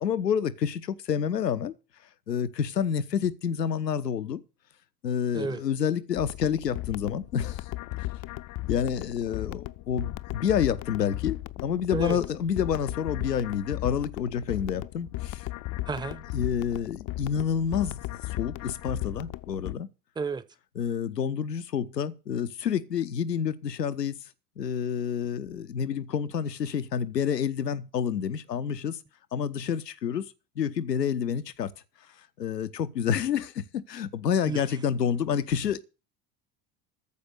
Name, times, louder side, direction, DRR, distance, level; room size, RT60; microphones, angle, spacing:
voice 1, 0.0-1.7 2.3-4.4 5.0-7.7 8.7-15.5 16.3-18.0 18.4-19.9 20.8-24.3 24.6-29.0 29.3-31.7 32.4-35.8, left 8 dB, 80° left, 0.9 m, -28 dB
voice 2, 5.3-5.6 11.9-12.2 15.8-16.3 20.2-20.5 34.4-34.8, right 4 dB, 10° right, 0.8 m, -32 dB
sound 1, 6.2-19.7, left 17 dB, 40° left, 0.6 m, -36 dB
14.0 x 5.1 x 8.1 m
figure-of-eight pair, 65°, 48 cm